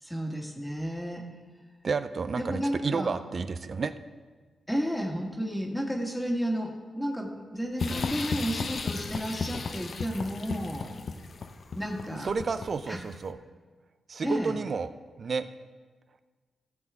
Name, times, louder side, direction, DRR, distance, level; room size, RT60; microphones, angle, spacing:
voice 1, 0.0-1.2 2.3-3.2 4.7-10.9 11.7-12.3 12.9-13.0 14.2-14.6, equal, 5° left, -1 dB, 1.8 m, -32 dB
voice 2, 1.8-3.9 12.2-13.4 14.1-14.9 15.2-15.5, right 5 dB, 55° right, 11 dB, 0.5 m, -31 dB
sound 1, 7.8-12.9, left 4 dB, 65° left, 0.7 m, -34 dB
15.0 x 7.2 x 3.6 m, 1.4 s
cardioid pair, 60°, 0 cm